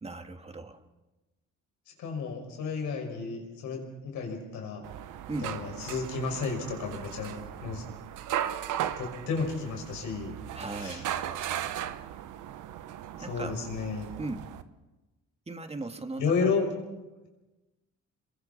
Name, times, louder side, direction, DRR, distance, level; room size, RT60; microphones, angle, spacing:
voice 1, 0.0-0.8 5.3-5.5 10.5-11.1 13.2-13.6 14.2-14.5 15.5-16.5, right 2 dB, 20° right, 7 dB, 1.8 m, -37 dB
voice 2, 2.0-3.8 4.1-4.8 5.4-7.3 7.6-7.8 9.0-10.3 10.8-11.0 13.3-14.1 16.2-16.7, left 4 dB, 80° left, 2 dB, 5.7 m, -32 dB
sound 1, 4.8-14.6, right 11 dB, 80° right, 1.1 m, -37 dB
29.0 x 22.0 x 4.2 m, 1.1 s
cardioid pair, 90°, 30 cm